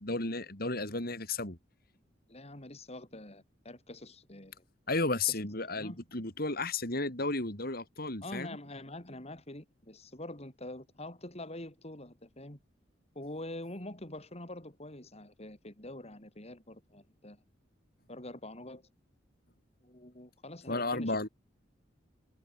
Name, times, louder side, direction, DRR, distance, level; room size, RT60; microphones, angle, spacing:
voice 1, 0.0-1.6 4.9-8.6 20.7-21.3, left 3 dB, 55° left, 5.8 m, -33 dB
voice 2, 2.3-4.6 5.7-6.0 8.2-12.6 13.1-17.4 18.1-18.8 19.8-21.3, left 1 dB, 35° left, 4.9 m, -45 dB
head